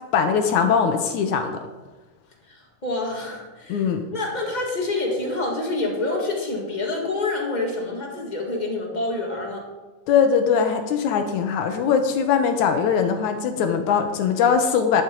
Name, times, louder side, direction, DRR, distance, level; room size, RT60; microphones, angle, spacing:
voice 1, 0.1-1.6 3.7-4.1 10.1-15.0, left 6 dB, 70° left, 7 dB, 2.0 m, -21 dB
voice 2, 2.5-9.7, left 2 dB, 20° left, -1 dB, 1.4 m, -27 dB
11.0 x 9.5 x 4.6 m, 1.2 s
omnidirectional pair, 3.9 m